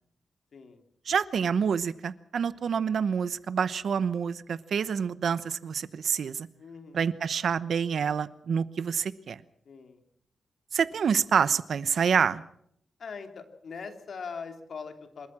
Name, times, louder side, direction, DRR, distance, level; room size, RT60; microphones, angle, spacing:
voice 1, 0.5-0.8 6.6-7.1 9.6-10.0 13.0-15.3, left 5 dB, 65° left, 6 dB, 2.9 m, -41 dB
voice 2, 1.1-6.5 6.9-9.4 10.7-12.4, right 7 dB, 70° right, 16 dB, 0.9 m, -27 dB
26.5 x 14.0 x 7.4 m, 0.71 s
wide cardioid pair, 120°, 0 cm